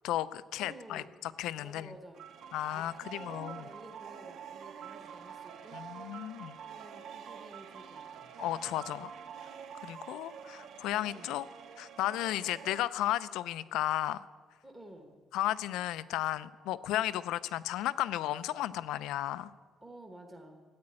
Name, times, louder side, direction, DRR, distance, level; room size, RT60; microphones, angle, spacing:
voice 1, 0.0-1.9 2.5-3.6 5.7-6.6 8.4-9.1 9.8-11.4 11.8-14.3 15.3-19.5, left 14 dB, 85° left, 15 dB, 0.5 m, -34 dB
voice 2, 0.6-1.1 1.6-2.2 2.7-5.8 6.6-8.3 11.1-11.3 14.6-15.1 19.8-20.6, right 1 dB, 10° right, 3 dB, 1.3 m, -52 dB
sound 1, 2.1-12.8, right 8 dB, 55° right, 0.7 m, -47 dB
14.0 x 9.6 x 8.9 m, 1.5 s
cardioid pair, 175°, 0 cm